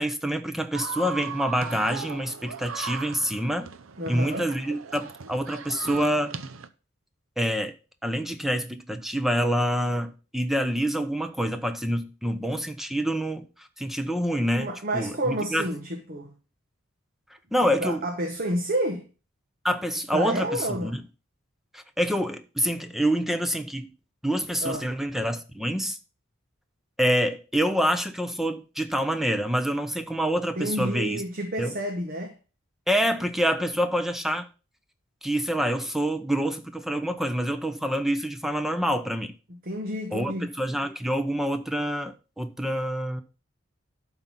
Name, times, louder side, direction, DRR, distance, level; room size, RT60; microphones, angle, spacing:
voice 1, 0.0-3.7 4.1-6.3 7.4-7.7 8.0-15.6 17.5-18.0 19.6-21.0 21.7-23.9 24.2-26.0 27.0-31.2 31.6-31.7 32.9-34.5 35.2-39.3 40.1-43.2, equal, ahead, 0.7 m, -27 dB
sound 1, 0.7-6.7, right 5 dB, 75° right, 0.7 m, -37 dB
voice 2, 4.0-4.5 14.5-16.3 17.8-19.0 20.1-21.0 24.6-24.9 30.6-32.3 39.6-40.5, right 1 dB, 45° right, 1.2 m, -30 dB
11.5 x 4.0 x 5.6 m
head